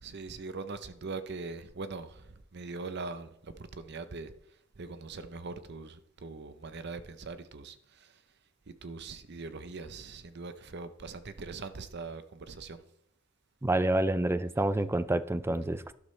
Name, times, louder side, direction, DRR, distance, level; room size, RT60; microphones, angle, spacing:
voice 1, 0.0-4.3 4.8-8.2 8.7-12.8, right 3 dB, 55° right, 0.7 m, -42 dB
voice 2, 13.6-15.9, right 1 dB, 10° right, 0.4 m, -28 dB
12.5 x 11.5 x 3.3 m
head